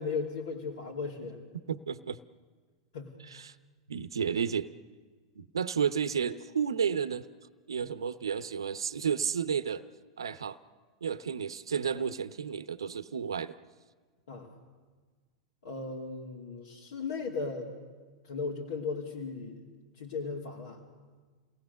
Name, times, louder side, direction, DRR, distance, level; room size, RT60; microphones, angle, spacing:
voice 1, 0.0-1.4 2.9-3.1 14.3-14.5 15.6-17.7 18.2-19.6 20.0-20.8, left 4 dB, 75° left, -3 dB, 2.8 m, -36 dB
voice 2, 1.7-2.2 3.2-3.5 3.9-4.7 5.4-7.3 7.7-9.8 10.2-10.6 11.0-13.6, right 7 dB, 80° right, 13 dB, 0.8 m, -32 dB
28.5 x 18.5 x 6.9 m, 1.5 s
hypercardioid pair, 95°, 2 cm